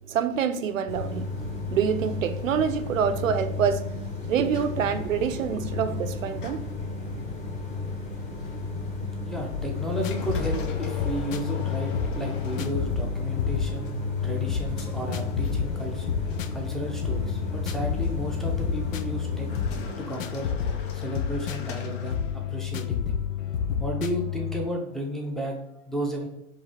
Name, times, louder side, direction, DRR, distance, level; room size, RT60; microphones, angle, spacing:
voice 1, 0.1-1.3 1.7-3.9 4.3-6.7, right 8 dB, 80° right, 0.6 m, -26 dB
sound 1, 0.9-19.9, left 3 dB, 20° left, 1.3 m, -34 dB
sound 2, 4.4-13.4 13.8-16.0 16.3-16.6 17.3-18.2 19.4-22.7, left 5 dB, 40° left, 0.6 m, -42 dB
voice 2, 9.2-26.3, right 1 dB, ahead, 0.6 m, -34 dB
sound 3, 9.5-24.7, left 8 dB, 80° left, 0.5 m, -30 dB
4.8 x 2.7 x 3.4 m
hypercardioid pair, 115°, 39 cm